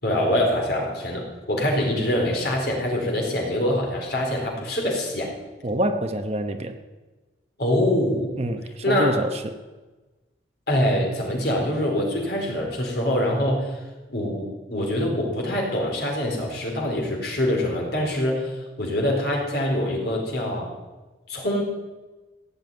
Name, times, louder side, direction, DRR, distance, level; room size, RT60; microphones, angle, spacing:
voice 1, 0.0-5.3 7.6-8.3 8.8-9.1 10.7-13.8 14.1-20.7 21.3-21.6, left 1 dB, 55° left, -1 dB, 4.5 m, -24 dB
voice 2, 5.6-6.7 8.4-9.5, right 1 dB, 35° right, 7 dB, 1.0 m, -26 dB
16.5 x 7.7 x 9.4 m, 1.2 s
head